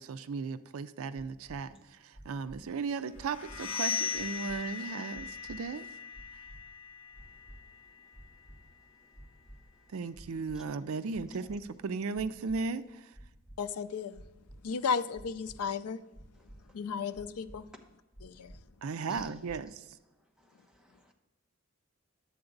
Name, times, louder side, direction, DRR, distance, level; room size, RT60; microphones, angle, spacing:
voice 1, 0.0-5.9 9.9-13.1 18.8-20.0, right 4 dB, 70° right, 13 dB, 0.4 m, -36 dB
sound 1, 1.4-1.6 2.1-2.6 3.1-3.6 4.1-4.6 5.1-5.6 6.1-6.6 7.1-7.6 8.1-8.6 9.1-9.6 10.1-10.6 11.1-11.6 12.1-12.6 13.1-13.6 14.1-14.6 15.1-15.6 16.1-16.6 17.1-17.6 18.1-18.6 19.1-19.6, right 1 dB, 20° left, 2.7 m, -51 dB
sound 2, 3.2-8.9, left 6 dB, 60° left, 1.0 m, -39 dB
voice 2, 13.6-14.2 14.6-16.0 16.7-17.6 18.2-18.5, left 6 dB, 90° left, 14 dB, 0.5 m, -34 dB
voice 3, 20.4-21.1, left 1 dB, 5° right, 0 dB, 1.0 m, -50 dB
11.0 x 7.8 x 3.9 m, 1.0 s
head